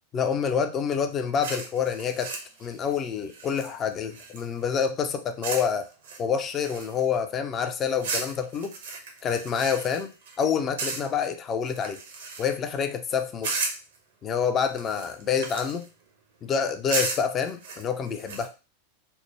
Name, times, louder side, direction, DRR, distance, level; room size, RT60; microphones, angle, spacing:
voice 1, 0.1-2.3 2.6-5.9 6.2-8.7 9.2-10.1 10.4-12.0 12.4-13.5 14.2-15.8 16.4-18.5, left 7 dB, 30° left, 8 dB, 0.4 m, -27 dB
sound 1, 1.4-4.6 5.4-5.7 6.0-7.2 8.0-10.4 10.8-11.3 11.6-12.7 13.4-14.0 14.7-15.9 16.9-18.5, right 4 dB, 60° right, 0.7 m, -34 dB
3.3 x 2.0 x 2.9 m, 0.31 s
figure-of-eight pair, 90°, 0 cm